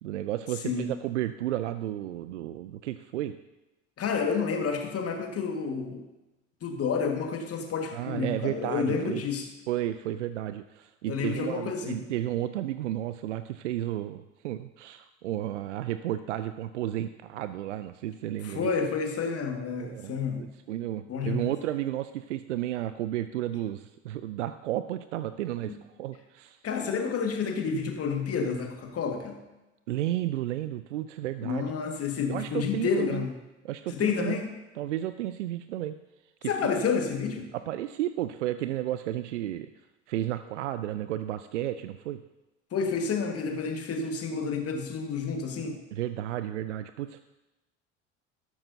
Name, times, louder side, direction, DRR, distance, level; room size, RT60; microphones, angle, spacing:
voice 1, 0.0-3.3 7.9-9.2 9.7-18.7 19.8-26.6 29.9-31.7 32.3-33.3 33.6-34.4 34.8-36.0 36.4-36.6 37.5-39.7 40.1-42.2 45.9-47.2, right 13 dB, 80° right, 12 dB, 0.5 m, -32 dB
voice 2, 4.0-6.1 6.6-9.5 11.1-12.1 18.4-20.5 21.1-21.5 25.7-25.8 26.6-29.4 31.4-33.3 33.9-34.5 36.5-37.5 42.7-45.8, left 5 dB, 40° left, 3 dB, 1.8 m, -30 dB
13.5 x 13.0 x 2.8 m, 1.0 s
figure-of-eight pair, 60°, 36 cm